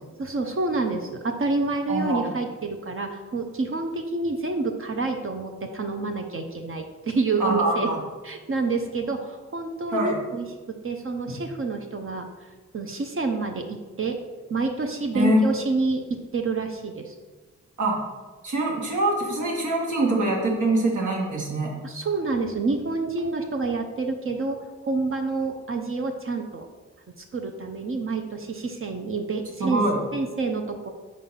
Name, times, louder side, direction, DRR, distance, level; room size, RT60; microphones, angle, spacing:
voice 1, 0.2-7.9 8.2-12.5 12.7-14.2 14.5-17.1 21.8-26.7 27.2-29.8 30.1-30.9, right 3 dB, 45° right, 4 dB, 0.7 m, -28 dB
voice 2, 1.9-2.3 7.4-8.0 9.9-10.2 11.3-11.4 15.1-15.4 17.8-18.0 18.4-21.7 29.6-30.0, right 1 dB, 75° right, -1 dB, 1.6 m, -24 dB
4.6 x 3.8 x 5.6 m, 1.3 s
cardioid pair, 65°, 30 cm